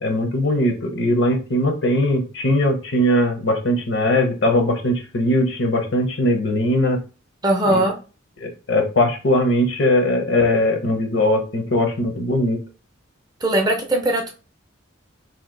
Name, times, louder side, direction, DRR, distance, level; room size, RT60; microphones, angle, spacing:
voice 1, 0.0-7.0 7.7-7.8 8.4-12.6, left 1 dB, 60° left, 4 dB, 0.8 m, -20 dB
voice 2, 7.4-7.9 13.4-14.3, right 1 dB, 20° right, 2 dB, 0.5 m, -19 dB
2.9 x 2.6 x 3.8 m, 0.34 s
head